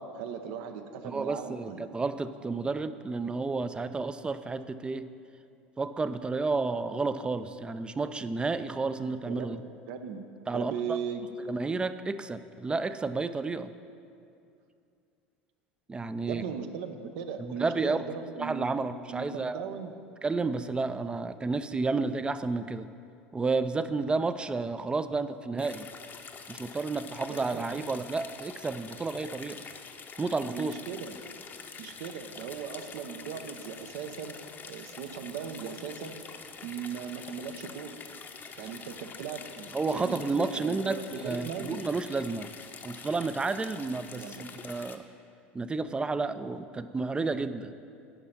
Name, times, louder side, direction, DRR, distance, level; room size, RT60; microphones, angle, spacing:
voice 1, 0.0-1.9 9.3-9.6 9.8-10.2 10.5-11.3 16.3-18.7 19.1-19.9 27.3-27.6 30.5-31.2 31.8-34.4 34.6-36.2 36.6-38.0 38.6-41.8 44.1-44.5, right 7 dB, 70° right, 7 dB, 0.7 m, -38 dB
voice 2, 1.0-5.1 5.8-9.6 10.5-11.0 11.5-13.7 15.9-16.4 17.4-18.0 18.4-19.6 20.2-22.9 23.3-25.9 26.5-29.6 30.2-30.7 39.7-42.5 42.8-45.0 45.5-47.7, right 3 dB, 15° right, 12 dB, 0.4 m, -31 dB
sound 1, 25.6-45.0, left 5 dB, 35° left, 0.7 m, -46 dB
9.9 x 5.3 x 5.9 m, 2.5 s
hypercardioid pair, 85°, 6 cm